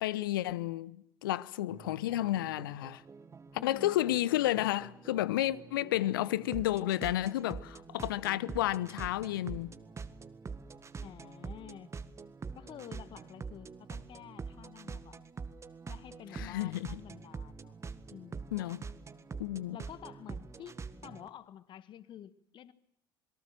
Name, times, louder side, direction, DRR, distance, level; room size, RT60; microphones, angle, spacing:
voice 1, 0.0-3.0 3.6-9.8 16.3-17.0 18.5-18.9 19.4-19.8, left 14 dB, 70° left, 1.0 m, -31 dB
sound 1, 1.7-21.3, right 5 dB, 25° right, 1.8 m, -45 dB
voice 2, 3.6-4.0 11.0-11.9 12.5-15.2 15.9-17.7 18.1-18.5 19.7-22.7, left 11 dB, 40° left, 1.5 m, -50 dB
27.5 x 22.5 x 7.7 m
figure-of-eight pair, 65°, 12 cm